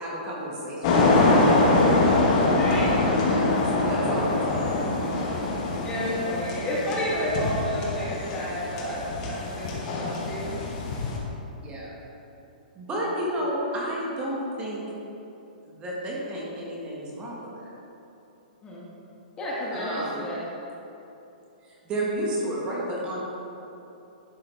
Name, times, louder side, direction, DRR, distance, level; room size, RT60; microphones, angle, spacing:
voice 1, 0.0-1.7 2.7-5.2 11.6-12.0 12.7-14.8 15.6-17.7 19.7-20.2 21.6-23.2, right 1 dB, 20° right, -5 dB, 1.4 m, -32 dB
sound 1, 0.8-11.2, left 2 dB, 40° left, 1.1 m, -24 dB
voice 2, 2.5-2.9 5.8-10.5 18.6-18.8 19.4-20.4, equal, 20° left, -6 dB, 1.3 m, -31 dB
11.5 x 3.9 x 3.3 m, 2.9 s
hypercardioid pair, 145°, 5 cm